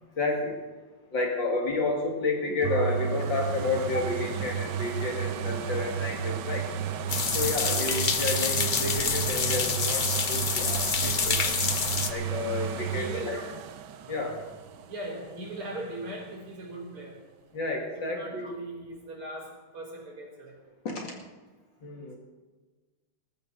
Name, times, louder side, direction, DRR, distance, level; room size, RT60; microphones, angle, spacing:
voice 1, 0.2-0.6 1.1-6.7 7.3-11.6 12.1-13.4 14.1-14.4 17.5-18.5 20.8-21.1 21.8-22.2, left 3 dB, 60° left, 1 dB, 2.9 m, -31 dB
sound 1, 2.6-16.3 16.8-16.9, right 8 dB, 65° right, 1.2 m, -33 dB
sound 2, 7.1-12.1, left 5 dB, 90° left, 0.4 m, -27 dB
voice 2, 12.7-13.3 14.9-17.2 17.9-20.6, right 1 dB, 90° right, -1 dB, 4.6 m, -40 dB
20.0 x 13.5 x 4.1 m, 1.3 s
omnidirectional pair, 2.4 m